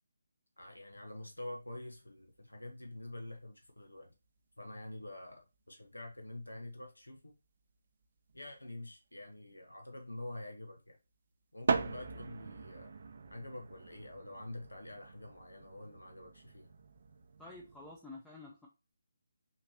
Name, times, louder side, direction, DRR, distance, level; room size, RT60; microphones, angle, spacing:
voice 1, 0.6-4.1 4.6-7.3 8.3-11.0 11.5-13.0 13.3-16.7, left 1 dB, 80° left, 1.1 m, -47 dB
sound 1, 0.6-1.4 1.6-2.1 3.1-3.2 3.4-3.5 4.0-4.1 5.0-5.1 5.3-5.4 6.1-6.2 6.4-6.5 6.7-6.8 8.0-8.8 11.6-18.0, right 5 dB, 45° right, 0.6 m, -40 dB
voice 2, 17.4-18.7, left 2 dB, 5° left, 0.7 m, -50 dB
5.8 x 3.1 x 2.8 m
figure-of-eight pair, 150°, 0 cm